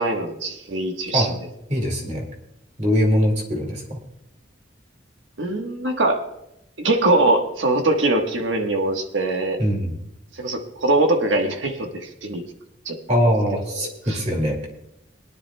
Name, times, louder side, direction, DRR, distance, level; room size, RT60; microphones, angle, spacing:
voice 1, 0.0-1.4 5.4-6.2 6.8-9.6 10.3-12.4 12.8-13.0 13.7-14.2, right 2 dB, 80° right, 3 dB, 1.4 m, -22 dB
voice 2, 1.7-2.3 2.8-4.0 9.6-10.0 13.1-14.6, equal, 35° right, 2 dB, 2.2 m, -22 dB
21.5 x 10.5 x 2.3 m, 0.83 s
head